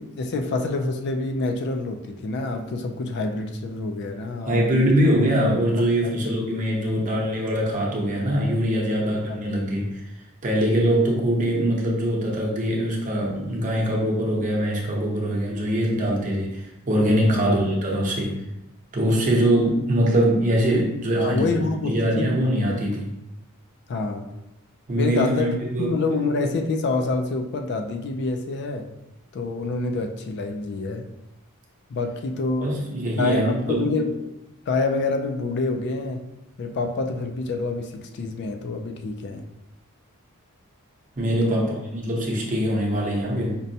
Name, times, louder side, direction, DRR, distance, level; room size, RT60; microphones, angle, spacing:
voice 1, 0.0-5.0 5.8-6.1 6.9-7.1 9.3-9.4 17.2-17.4 21.2-22.4 22.7-22.8 23.9-24.3 25.0-28.9 29.3-31.1 31.9-32.8 33.2-34.2 34.7-36.2 36.6-39.5 41.4-41.7, left 3 dB, 50° left, 5 dB, 0.3 m, -27 dB
voice 2, 4.5-10.0 10.4-18.3 18.9-21.5 21.8-23.1 24.9-25.9 32.6-33.9 41.2-43.6, right 1 dB, 40° right, -3 dB, 0.8 m, -23 dB
5.2 x 2.1 x 2.7 m, 0.92 s
head